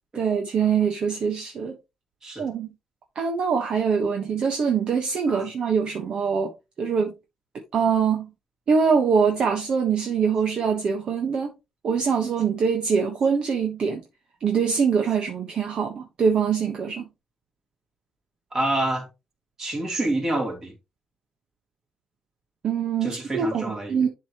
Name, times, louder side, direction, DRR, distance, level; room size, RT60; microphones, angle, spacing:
voice 1, 0.1-1.8 2.4-2.7 3.1-6.5 6.8-7.1 7.7-8.3 8.7-11.5 11.8-14.0 14.4-17.1 22.6-23.6 23.9-24.1, right 6 dB, 45° right, 1.3 m, -23 dB
voice 2, 18.5-19.1 19.6-20.7 23.0-24.0, right 1 dB, 25° right, 3.2 m, -27 dB
11.0 x 4.9 x 3.0 m
cardioid pair, 170°, 2 cm